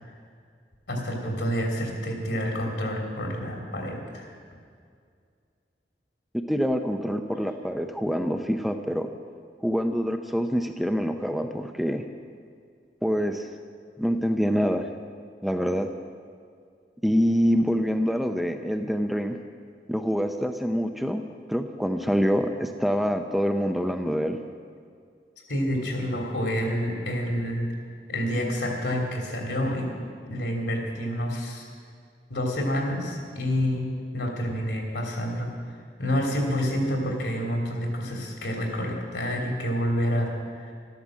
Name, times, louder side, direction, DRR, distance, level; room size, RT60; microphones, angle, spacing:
voice 1, 0.9-4.3 25.5-27.7 28.1-29.9 30.2-31.7 32.3-35.5 36.0-40.7, equal, 75° left, 1 dB, 3.1 m, -28 dB
voice 2, 6.5-9.1 9.6-12.0 13.0-13.5 14.0-14.9 15.4-15.9 17.0-19.4 19.9-21.2 21.5-24.4, equal, ahead, 5 dB, 0.5 m, -25 dB
13.0 x 12.0 x 7.5 m, 2.2 s
head